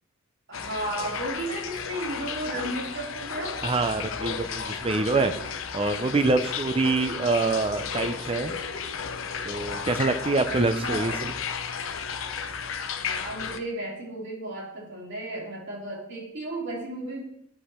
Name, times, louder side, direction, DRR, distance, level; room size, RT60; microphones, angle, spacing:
sound 1, 0.5-13.6, left 6 dB, 70° left, 0.7 m, -33 dB
voice 1, 0.5-3.6 10.5-11.2 13.0-17.2, right 1 dB, 60° right, -3 dB, 3.0 m, -34 dB
voice 2, 3.6-5.3 5.7-8.6 9.5-11.3, right 3 dB, 30° right, 9 dB, 0.5 m, -25 dB
9.7 x 5.4 x 4.3 m, 0.74 s
head